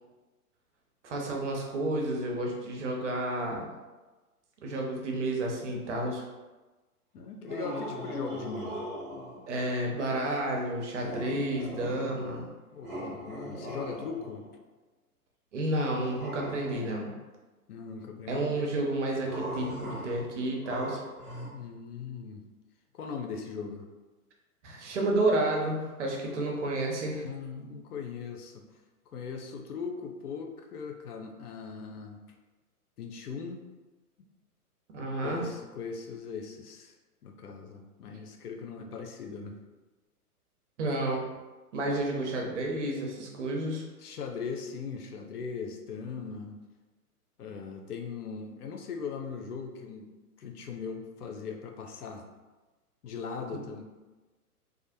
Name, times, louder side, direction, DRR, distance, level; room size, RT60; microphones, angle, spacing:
voice 1, 1.0-3.7 4.6-6.2 9.5-12.4 15.5-17.1 18.3-21.0 24.6-27.2 34.9-35.4 40.8-41.2 41.7-43.8, right 1 dB, 50° right, 0 dB, 0.6 m, -31 dB
voice 2, 7.1-8.9 12.7-14.4 17.7-18.7 21.5-22.4 22.9-23.9 26.3-26.4 27.2-28.6 29.1-32.2 33.0-33.6 35.2-36.9 37.2-39.6 44.0-46.6 47.4-50.1 50.4-52.3 53.0-53.8, left 5 dB, 75° left, 3 dB, 0.5 m, -39 dB
sound 1, 7.4-9.5 10.9-12.4 12.8-14.5 16.0-17.1 19.2-21.5, equal, 5° right, 0.5 m, -39 dB
2.4 x 2.0 x 2.6 m, 1.2 s
figure-of-eight pair, 120°, 46 cm